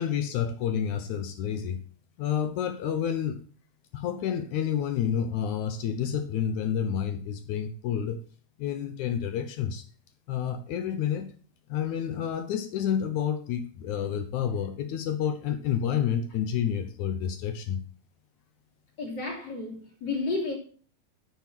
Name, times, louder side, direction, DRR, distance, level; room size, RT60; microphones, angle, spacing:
voice 1, 0.0-1.8 2.2-3.4 3.9-8.2 8.6-9.8 10.3-11.3 11.7-17.8, left 8 dB, 85° left, 1.7 m, -29 dB
voice 2, 19.0-20.6, left 3 dB, 30° left, 3.2 m, -32 dB
9.5 x 9.3 x 5.9 m
omnidirectional pair, 4.9 m